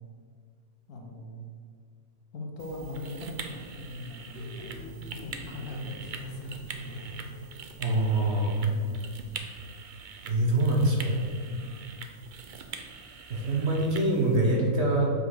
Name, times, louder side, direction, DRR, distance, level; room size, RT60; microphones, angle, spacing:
voice 1, 0.9-1.4 2.3-5.0 5.2-7.8 8.5-9.2 11.4-11.9, left 2 dB, 65° left, 1 dB, 1.6 m, -41 dB
sound 1, 2.6-14.4, right 5 dB, 65° right, 0.5 m, -44 dB
sound 2, 4.3-7.8, equal, 45° left, 1.0 m, -44 dB
voice 2, 7.8-8.6 10.2-11.2 13.3-15.1, right 2 dB, 45° right, -1 dB, 1.3 m, -24 dB
5.6 x 5.4 x 6.4 m, 2.2 s
omnidirectional pair, 1.7 m